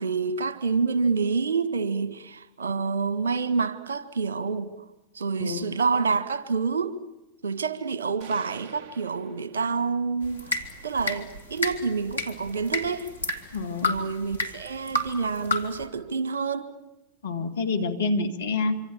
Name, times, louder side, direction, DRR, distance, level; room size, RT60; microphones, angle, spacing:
voice 1, 0.0-4.7 5.1-7.0 7.4-10.6 10.8-13.1 13.8-16.7, right 5 dB, 65° right, 1.7 m, -27 dB
voice 2, 5.4-5.7 13.5-14.0 17.2-18.8, left 3 dB, 65° left, 2.3 m, -27 dB
sound 1, 8.2-10.2, right 6 dB, 40° right, 3.7 m, -47 dB
sound 2, 10.2-15.9, left 2 dB, 80° left, 2.6 m, -32 dB
26.0 x 26.0 x 7.4 m
figure-of-eight pair, 90°, 0 cm